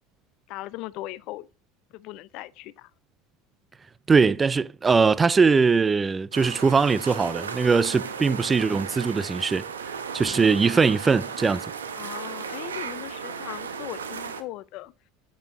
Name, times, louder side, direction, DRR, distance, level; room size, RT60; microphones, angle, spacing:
voice 1, 0.5-1.5 1.9-2.9 12.0-14.9, left 17 dB, 55° left, 0.4 m, -38 dB
voice 2, 4.1-9.7 10.1-11.7, right 5 dB, 20° right, 0.3 m, -21 dB
sound 1, 6.3-14.4, right 6 dB, 90° right, 0.8 m, -35 dB
8.3 x 5.4 x 2.9 m
hypercardioid pair, 85°, 0 cm